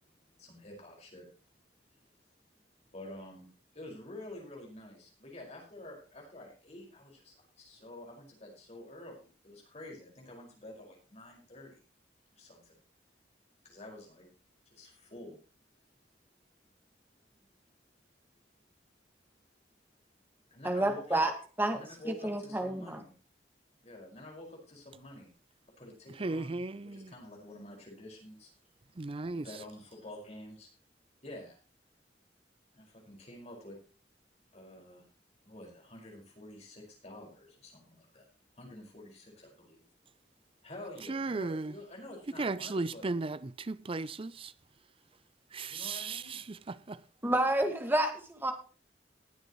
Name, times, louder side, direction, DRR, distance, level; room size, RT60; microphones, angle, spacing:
voice 1, 0.4-1.3 2.9-3.5 3.7-11.8 12.3-12.7 13.6-14.3 14.7-15.4 20.5-21.2 21.7-23.1 23.8-25.3 25.8-28.5 29.3-30.7 31.2-31.6 32.7-33.8 34.5-35.1 35.4-38.3 38.6-39.9 40.6-43.1 45.7-46.4, left 1 dB, 40° left, 5.3 m, -49 dB
voice 2, 20.6-21.3 21.6-21.8 22.1-23.0 47.2-48.5, right 1 dB, 10° right, 1.9 m, -29 dB
voice 3, 26.2-27.1 29.0-29.5 41.1-41.7 42.4-44.5 45.5-47.0, right 3 dB, 30° right, 0.5 m, -36 dB
19.5 x 8.1 x 3.1 m
head